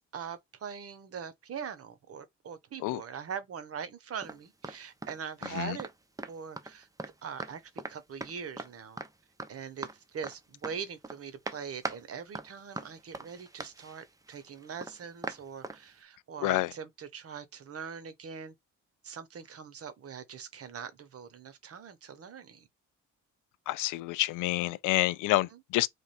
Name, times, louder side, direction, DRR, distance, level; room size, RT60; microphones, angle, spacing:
voice 1, 0.0-5.9 6.3-6.9 7.2-9.0 9.5-18.5 19.0-22.7 25.5-25.6, right 7 dB, 50° right, 1.0 m, -42 dB
sound 1, 4.2-4.8 5.0-5.2 5.4-5.9 6.2-7.1 7.4-7.5 7.8-7.9 8.2-8.7 9.0-9.1 9.4-10.0 10.2-10.4 10.6-11.2 11.5-12.0 12.3-15.8, right 2 dB, 10° right, 0.6 m, -40 dB
voice 2, 5.4-5.8 16.4-16.7 23.7-25.9, left 17 dB, 85° left, 0.5 m, -28 dB
3.3 x 2.5 x 4.2 m
cardioid pair, 90°, 30 cm